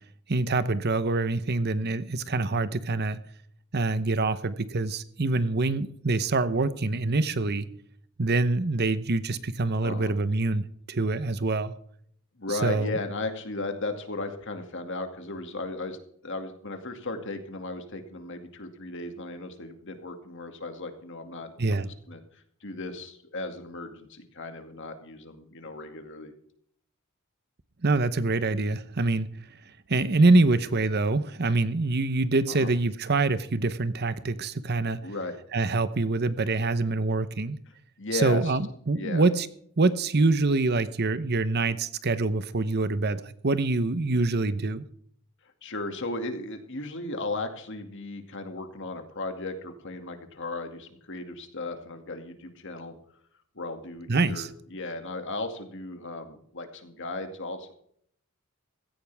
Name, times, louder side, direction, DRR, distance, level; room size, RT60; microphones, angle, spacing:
voice 1, 0.3-3.2 3.7-7.7 8.2-11.7 12.6-13.0 21.6-21.9 27.8-29.3 29.9-35.0 35.5-37.6 38.1-39.5 39.8-44.8 54.1-54.5, right 3 dB, 50° right, 0.9 m, -25 dB
voice 2, 9.8-10.2 12.4-16.0 16.2-26.3 32.5-32.7 35.0-35.4 37.7-38.6 39.0-39.3 45.6-52.9 53.6-57.7, left 2 dB, 55° left, 2.3 m, -36 dB
16.5 x 14.5 x 3.5 m
head